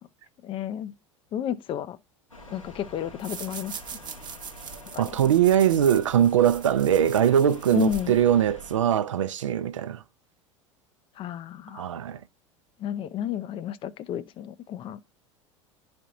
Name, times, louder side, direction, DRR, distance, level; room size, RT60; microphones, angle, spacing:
voice 1, 0.4-0.9 1.3-2.0 2.5-3.7 4.9-5.1 7.7-8.1 11.2-11.8 12.8-15.0, left 10 dB, 30° left, 0.5 m, -31 dB
sound 1, 2.3-8.8, left 1 dB, 90° left, 1.5 m, -45 dB
sound 2, 3.2-8.5, right 7 dB, 25° right, 0.9 m, -42 dB
voice 2, 5.0-10.0 11.7-12.2, right 10 dB, 70° right, 0.5 m, -21 dB
11.0 x 4.3 x 2.4 m
figure-of-eight pair, 75°, 17 cm